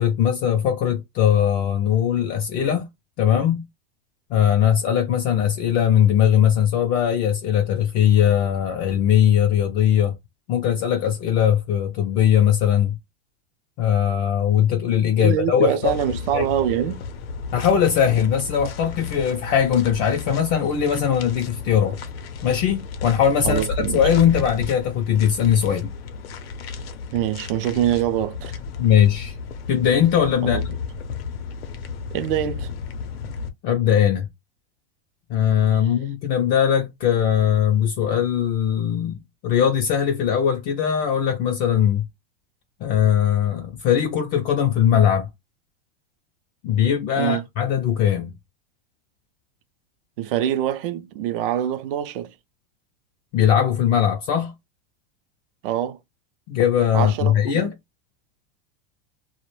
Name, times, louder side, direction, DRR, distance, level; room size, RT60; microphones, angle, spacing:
voice 1, 0.0-2.9 3.2-3.6 4.3-10.2 10.5-13.0 13.8-15.9 16.3-16.4 17.5-22.0 22.4-25.9 28.8-29.3 29.7-30.6 33.6-34.3 35.3-39.2 39.4-42.0 42.8-45.3 46.6-48.3 53.3-54.5 56.5-57.7, left 9 dB, 30° left, 0.3 m, -20 dB
voice 2, 15.2-17.0 23.4-24.0 27.1-28.6 30.4-30.6 32.1-32.7 35.7-35.9 47.2-47.4 50.2-52.3 55.6-56.0 56.9-57.7, right 11 dB, 65° right, 0.5 m, -24 dB
sound 1, 15.8-33.5, left 5 dB, 90° left, 0.6 m, -33 dB
2.1 x 2.1 x 3.0 m
supercardioid pair, 140°, 29 cm